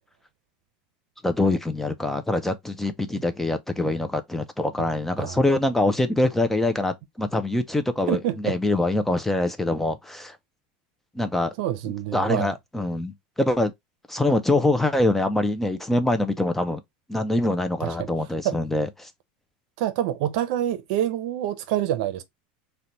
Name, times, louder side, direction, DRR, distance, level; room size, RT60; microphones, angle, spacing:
voice 1, 1.2-10.4 11.1-11.5 11.8-13.7 14.1-16.8 17.1-19.1, left 2 dB, 5° left, 0.3 m, -24 dB
voice 2, 8.1-8.6 11.6-12.5 17.8-18.1 18.4-18.6 19.8-22.2, right 12 dB, 65° right, 0.6 m, -26 dB
3.9 x 2.2 x 2.8 m
supercardioid pair, 150°, 5 cm